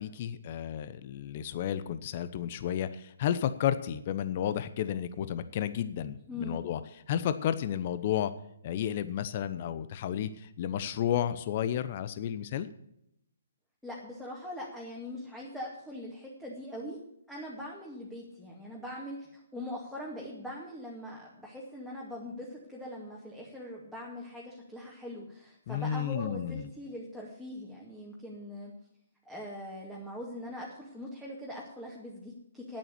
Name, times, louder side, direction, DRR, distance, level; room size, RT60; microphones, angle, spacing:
voice 1, 0.0-6.8 7.1-8.3 8.6-12.7 25.7-26.7, left 10 dB, 45° left, 13 dB, 0.8 m, -32 dB
voice 2, 6.3-6.6 13.8-17.0 17.3-28.7 29.3-32.8, left 1 dB, ahead, -5 dB, 2.2 m, -42 dB
9.5 x 8.7 x 8.3 m, 0.79 s
figure-of-eight pair, 135°, 0 cm